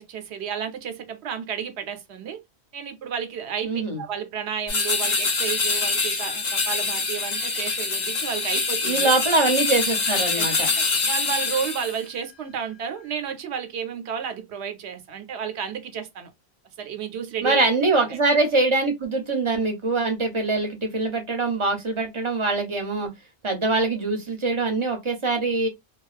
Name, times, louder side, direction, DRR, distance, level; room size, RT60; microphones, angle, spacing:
voice 1, 0.0-2.4 2.7-9.2 10.3-10.5 10.7-16.3 16.8-18.2, right 8 dB, 80° right, 0.9 m, -32 dB
voice 2, 3.6-4.0 8.8-10.7 17.4-23.1 23.4-25.7, right 3 dB, 35° right, 0.6 m, -23 dB
sound 1, 4.7-12.0, left 4 dB, 45° left, 0.8 m, -25 dB
2.3 x 2.2 x 2.4 m
omnidirectional pair, 1.1 m